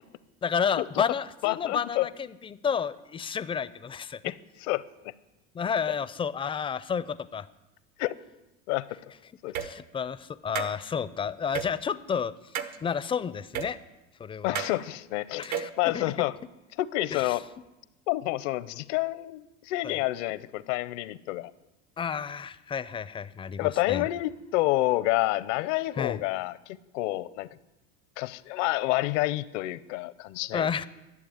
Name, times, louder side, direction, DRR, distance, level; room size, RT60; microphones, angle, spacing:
voice 1, 0.4-4.3 5.5-7.5 9.6-12.3 12.8-13.8 14.2-14.6 15.4-16.1 17.1-17.4 19.8-20.0 22.0-24.1 26.0-26.2 30.5-30.8, left 7 dB, 15° left, 15 dB, 0.4 m, -31 dB
voice 2, 1.4-2.1 4.2-4.3 4.6-5.1 8.0-8.1 8.7-8.9 9.4-9.6 14.4-16.3 16.8-17.4 18.1-21.5 23.6-27.5 28.2-30.7, left 18 dB, 75° left, 17 dB, 0.7 m, -29 dB
sound 1, 9.5-9.7 10.6-10.7 11.5-11.7 12.5-12.8 13.5-13.7 14.6-14.7 15.4-15.7, right 9 dB, 75° right, 1.2 m, -31 dB
12.0 x 7.1 x 9.9 m, 1.0 s
supercardioid pair, 110°, 37 cm